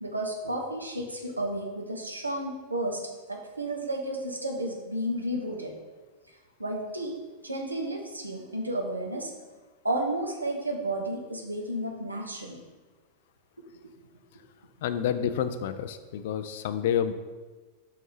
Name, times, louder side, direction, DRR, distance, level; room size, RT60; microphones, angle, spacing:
voice 1, 0.0-5.8 6.6-9.3 9.8-12.6, right 1 dB, 85° right, 2 dB, 0.9 m, -32 dB
voice 2, 14.8-17.1, left 9 dB, 55° left, 10 dB, 0.4 m, -29 dB
5.6 x 4.3 x 4.8 m, 1.3 s
figure-of-eight pair, 90°, 0 cm